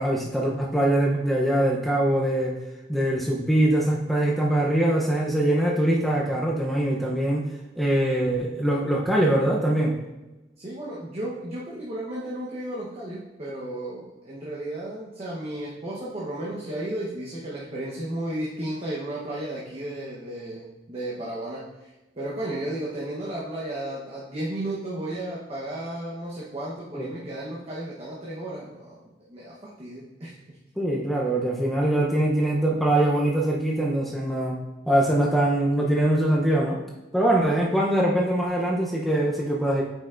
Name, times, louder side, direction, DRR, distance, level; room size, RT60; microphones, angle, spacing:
voice 1, 0.0-2.5 2.9-7.5 7.8-9.9 26.9-27.1 30.8-34.6 34.9-36.8 37.1-39.8, right 1 dB, ahead, -3 dB, 0.7 m, -23 dB
voice 2, 10.6-21.9 22.1-30.6, right 1 dB, 35° right, -6 dB, 1.0 m, -34 dB
8.9 x 5.5 x 2.5 m, 1.1 s
head